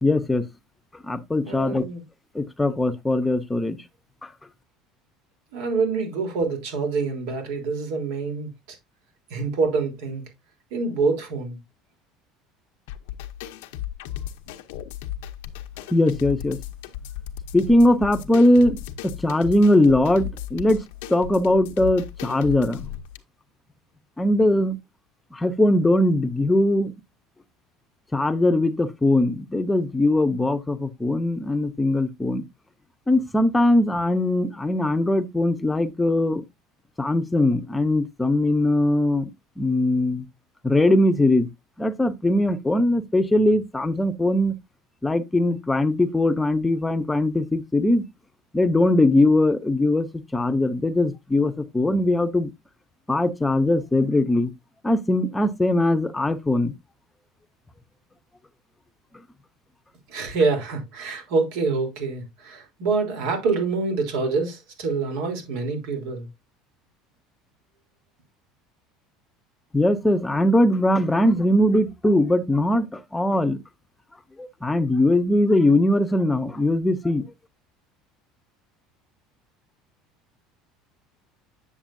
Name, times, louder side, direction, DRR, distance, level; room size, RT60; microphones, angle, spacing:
voice 1, 0.0-0.5 1.0-1.8 2.3-3.8 4.2-4.3 15.9-16.6 17.5-20.8 21.1-22.9 24.2-24.8 25.3-26.9 28.1-32.4 33.1-36.4 37.0-39.3 39.6-40.2 40.6-41.5 41.8-44.5 45.0-48.0 48.5-50.1 50.3-52.5 53.1-54.5 54.8-56.7 69.7-73.6 74.4-77.2, left 1 dB, 10° left, 0.8 m, -20 dB
voice 2, 1.4-2.0 5.5-8.8 9.3-10.2 10.7-11.6 60.1-66.3, right 4 dB, 80° right, 3.4 m, -26 dB
sound 1, 12.9-23.2, left 11 dB, 90° left, 0.8 m, -36 dB
8.9 x 6.7 x 2.6 m
supercardioid pair, 125°, 0 cm